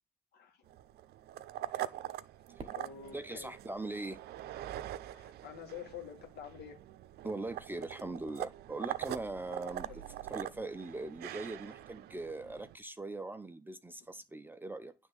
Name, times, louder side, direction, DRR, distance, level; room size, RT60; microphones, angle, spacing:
voice 1, 0.3-0.7 2.7-3.5 5.1-6.8 9.9-10.1, left 8 dB, 70° left, 2.0 m, -48 dB
sound 1, 0.7-12.8, right 13 dB, 70° right, 0.6 m, -43 dB
Fireworks, 2.6-4.9, right 4 dB, 35° right, 1.6 m, -54 dB
voice 2, 3.1-4.2 7.2-10.0 10.3-14.9, right 2 dB, 10° right, 0.6 m, -41 dB
9.3 x 3.5 x 6.6 m
cardioid pair, 110°, 17 cm